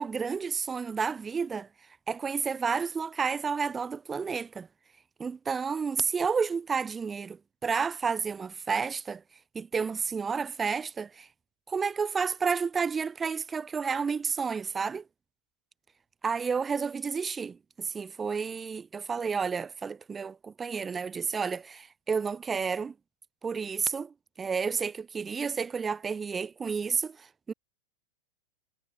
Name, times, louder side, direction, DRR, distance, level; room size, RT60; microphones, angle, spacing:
voice 1, 0.0-1.7 2.1-4.7 5.2-9.2 9.5-11.3 11.7-15.0 16.2-22.9 23.4-27.5, right 5 dB, 15° right, 4.7 m, -31 dB
figure-of-eight pair, 90°, 0 cm